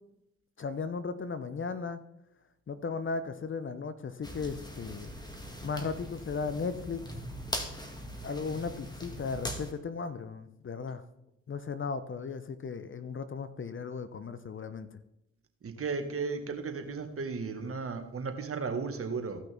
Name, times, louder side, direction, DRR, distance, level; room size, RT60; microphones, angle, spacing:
voice 1, 0.6-2.0 2.7-5.1 5.6-7.0 8.2-11.0 11.5-14.9, left 5 dB, 35° left, 12 dB, 0.9 m, -36 dB
sound 1, 4.2-9.7, equal, 10° left, 2.0 m, -41 dB
voice 2, 15.6-19.4, right 4 dB, 45° right, 6 dB, 1.7 m, -35 dB
16.0 x 5.9 x 3.5 m, 0.85 s
hypercardioid pair, 50°, 33 cm